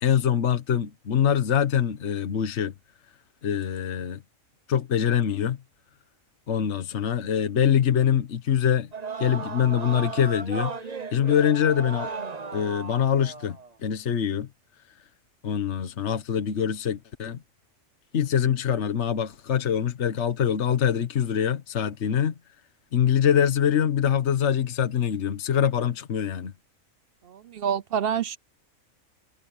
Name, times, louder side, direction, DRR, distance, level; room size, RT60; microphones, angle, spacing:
voice 1, 0.0-2.7 3.4-4.2 4.7-5.6 6.5-8.9 9.2-10.7 11.1-12.1 12.5-13.6 13.8-14.5 15.4-17.4 18.1-22.3 22.9-26.5, left 8 dB, 60° left, 1.4 m, -24 dB
sound 1, 8.9-13.7, right 4 dB, 30° right, 1.1 m, -36 dB
voice 2, 27.3-28.4, right 8 dB, 55° right, 0.7 m, -27 dB
omnidirectional pair, 1.4 m